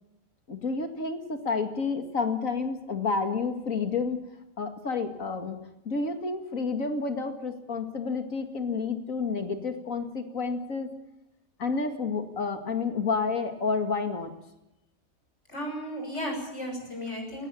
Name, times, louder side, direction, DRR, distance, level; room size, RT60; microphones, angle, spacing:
voice 1, 0.5-4.2 4.6-5.6 5.8-10.9 11.6-14.3, left 4 dB, 70° left, 6 dB, 2.6 m, -30 dB
voice 2, 15.5-17.5, equal, 55° left, 2 dB, 7.1 m, -34 dB
18.5 x 17.5 x 8.6 m, 0.92 s
omnidirectional pair, 1.4 m